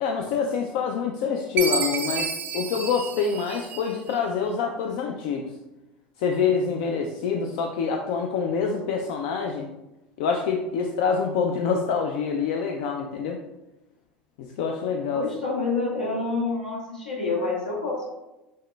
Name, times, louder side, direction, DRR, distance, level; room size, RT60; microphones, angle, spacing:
voice 1, 0.0-5.5 6.2-9.7 10.2-13.4 14.6-15.2, left 6 dB, 65° left, 2 dB, 0.4 m, -26 dB
Chime, 1.6-4.1, right 5 dB, 40° right, 0.5 m, -30 dB
voice 2, 15.1-18.1, left 3 dB, 90° left, -5 dB, 1.3 m, -27 dB
6.3 x 2.1 x 2.2 m, 0.98 s
hypercardioid pair, 80°, 5 cm